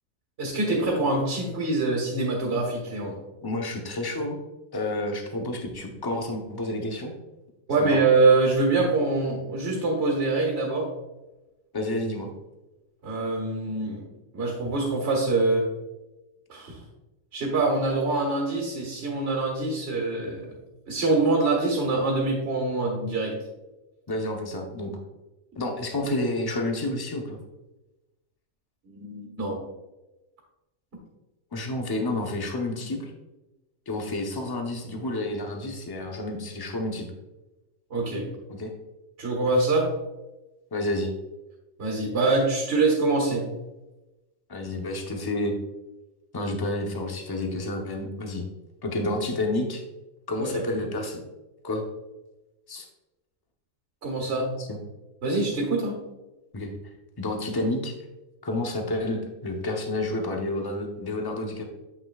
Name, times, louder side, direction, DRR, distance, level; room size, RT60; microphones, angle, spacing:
voice 1, 0.4-3.2 7.7-10.9 13.0-14.0 14.3-15.6 16.5-16.8 17.3-20.5 20.9-23.3 28.9-29.6 37.9-38.3 39.2-39.9 41.8-43.4 50.4-50.6 54.0-54.5 55.2-56.0, right 3 dB, 50° right, -1 dB, 1.7 m, -24 dB
voice 2, 3.4-4.4 4.7-7.1 7.8-8.0 11.7-12.3 24.1-24.9 25.6-27.4 31.5-33.1 33.9-37.1 38.5-38.7 40.7-41.1 44.5-45.6 46.3-48.4 48.8-49.8 50.3-51.2 51.6-51.8 52.7-52.8 54.6-54.8 56.5-56.7 57.2-57.9 58.4-61.6, left 2 dB, 25° left, 2 dB, 0.6 m, -30 dB
8.1 x 5.7 x 2.3 m, 1.0 s
omnidirectional pair, 1.4 m